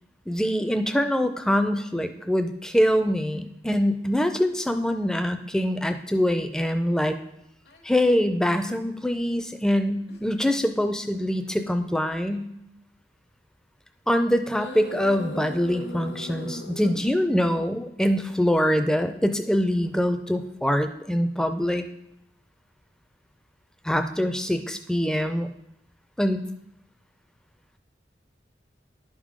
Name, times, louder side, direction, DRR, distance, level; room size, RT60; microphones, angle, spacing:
voice 1, 0.3-7.2 7.8-12.5 14.1-21.8 23.8-25.5 26.2-26.4, equal, 5° left, 8 dB, 0.3 m, -24 dB
sound 1, 7.7-7.8 8.6-8.7 10.1-10.3 11.3-11.6 12.3-12.4 14.5-17.1, left 1 dB, 75° left, 0.9 m, -38 dB
10.5 x 3.7 x 4.9 m, 0.79 s
head